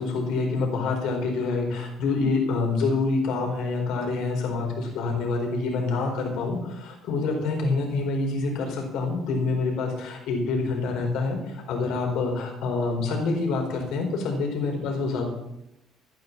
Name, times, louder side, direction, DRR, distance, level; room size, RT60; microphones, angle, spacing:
voice 1, 0.0-15.2, left 3 dB, 75° left, 1 dB, 4.6 m, -26 dB
17.0 x 10.5 x 4.1 m, 0.83 s
cardioid pair, 115°, 0 cm